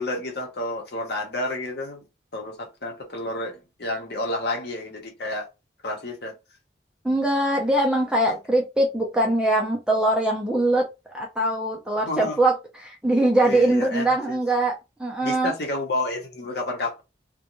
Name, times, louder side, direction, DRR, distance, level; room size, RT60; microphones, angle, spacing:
voice 1, 0.0-2.0 2.3-5.5 5.8-6.3 12.0-12.4 13.4-14.4 15.2-17.0, left 2 dB, 55° left, 0.8 m, -30 dB
voice 2, 7.0-10.9 11.1-12.6 12.8-15.5, right 1 dB, 5° right, 0.4 m, -22 dB
2.5 x 2.2 x 2.9 m
head